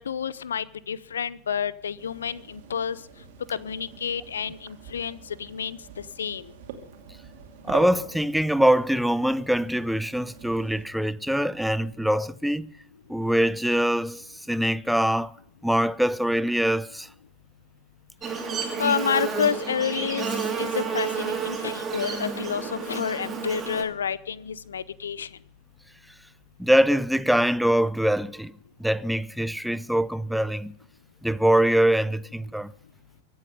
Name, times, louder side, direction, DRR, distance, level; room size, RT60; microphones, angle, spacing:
voice 1, 0.0-3.0 3.5-6.5 18.8-20.3 20.6-25.3, left 7 dB, 70° left, 0.7 m, -29 dB
sound 1, 2.0-10.9, right 7 dB, 50° right, 2.6 m, -44 dB
voice 2, 7.6-12.7 13.1-15.3 15.6-17.1 26.6-28.5 28.8-30.7 31.2-32.7, right 1 dB, ahead, 0.5 m, -23 dB
Buzz, 18.2-23.8, right 6 dB, 20° right, 3.0 m, -30 dB
23.5 x 8.7 x 5.5 m
figure-of-eight pair, 90°, 0 cm